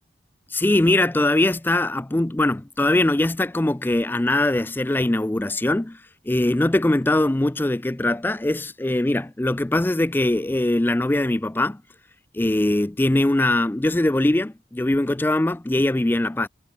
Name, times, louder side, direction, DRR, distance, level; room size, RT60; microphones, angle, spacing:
voice 1, 0.5-6.0 6.3-11.8 12.3-16.5, left 1 dB, 10° left, 0.4 m, -21 dB
head